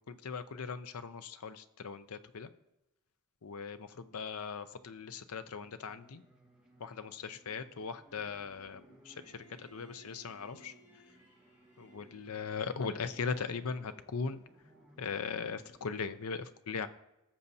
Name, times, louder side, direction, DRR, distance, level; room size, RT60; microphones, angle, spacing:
voice 1, 0.0-2.5 3.4-6.2 6.8-10.7 11.8-14.4 15.0-16.9, left 5 dB, 80° left, 11 dB, 0.6 m, -39 dB
sound 1, 4.8-16.1, right 1 dB, 5° right, 1.6 m, -62 dB
Bowed string instrument, 9.0-14.0, right 1 dB, 35° left, 3.2 m, -64 dB
17.0 x 6.9 x 2.8 m, 0.93 s
head